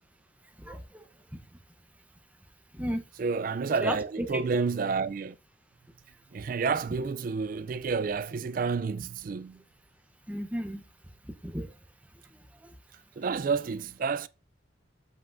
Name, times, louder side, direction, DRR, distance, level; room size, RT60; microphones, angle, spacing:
voice 1, 0.6-1.0 2.7-3.0 3.8-4.4 10.3-10.8 11.3-11.7 12.6-12.7, equal, 5° right, 0.7 m, -34 dB
voice 2, 3.2-5.4 6.3-9.6 13.2-14.3, right 5 dB, 45° right, 0.3 m, -29 dB
7.6 x 5.5 x 2.5 m
head